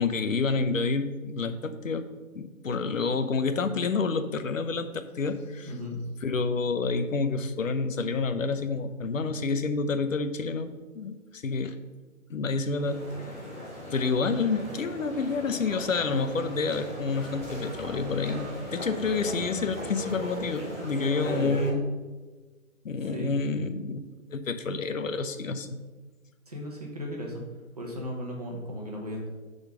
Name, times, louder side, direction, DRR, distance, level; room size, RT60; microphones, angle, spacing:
voice 1, 0.0-2.1 2.3-5.7 6.2-11.8 12.3-13.1 13.9-21.9 22.8-24.0 24.3-25.8, left 4 dB, 70° left, 10 dB, 0.8 m, -29 dB
voice 2, 5.6-6.0 21.3-21.6 23.0-23.3 26.5-27.4 27.8-29.3, left 1 dB, 30° right, -1 dB, 1.1 m, -36 dB
sound 1, 12.7-21.7, equal, 10° left, 0.9 m, -37 dB
6.8 x 4.0 x 6.2 m, 1.3 s
hypercardioid pair, 175°, 42 cm